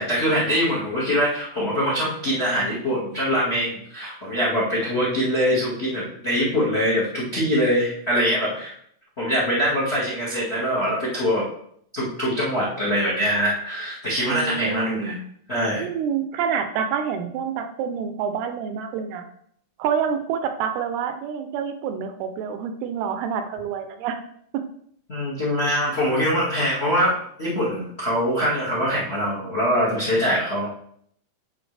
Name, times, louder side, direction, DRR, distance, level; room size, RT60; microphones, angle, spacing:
voice 1, 0.0-8.7 9.2-11.4 11.9-15.1 15.5-15.8 25.1-30.7, equal, 45° left, -6 dB, 0.7 m, -23 dB
voice 2, 14.3-15.2 15.8-19.3 19.8-24.2 24.5-24.6, right 7 dB, 80° right, 7 dB, 2.5 m, -27 dB
10.0 x 4.8 x 3.3 m, 0.66 s
omnidirectional pair, 4.7 m